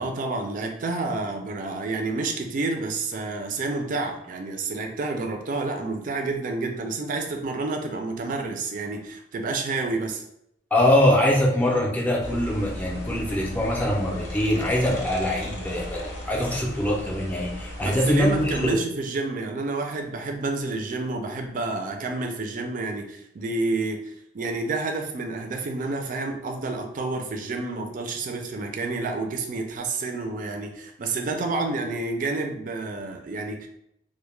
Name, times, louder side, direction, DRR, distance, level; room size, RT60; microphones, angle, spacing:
voice 1, 0.0-10.2 17.8-33.7, right 3 dB, 50° right, 4 dB, 0.4 m, -29 dB
voice 2, 10.7-16.0 16.3-18.8, left 1 dB, 10° left, -3 dB, 0.5 m, -23 dB
sound 1, 12.2-18.7, left 1 dB, 75° left, 0.7 m, -36 dB
2.2 x 2.1 x 3.1 m, 0.76 s
head